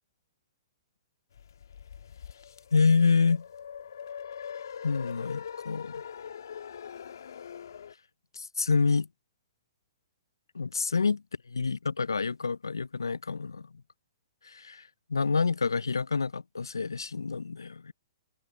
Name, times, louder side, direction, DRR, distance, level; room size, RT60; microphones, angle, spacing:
sound 1, 1.4-7.9, left 7 dB, 70° left, 1.7 m, -42 dB
voice 1, 2.7-3.5 4.8-6.0 8.3-9.1 10.5-13.7 14.4-17.9, left 4 dB, 85° left, 0.4 m, -28 dB
hypercardioid pair, 120°, 2 cm